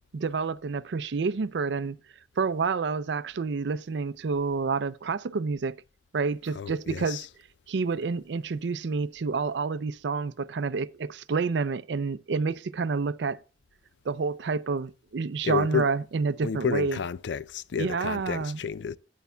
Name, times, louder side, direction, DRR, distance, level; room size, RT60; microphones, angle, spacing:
voice 1, 0.1-2.0 2.4-5.7 6.1-7.3 7.7-13.4 14.1-17.0 17.8-18.6, right 4 dB, 80° right, 0.5 m, -29 dB
voice 2, 6.5-7.3 15.4-15.9 16.4-19.0, left 7 dB, 90° left, 0.4 m, -31 dB
11.0 x 9.3 x 2.3 m
head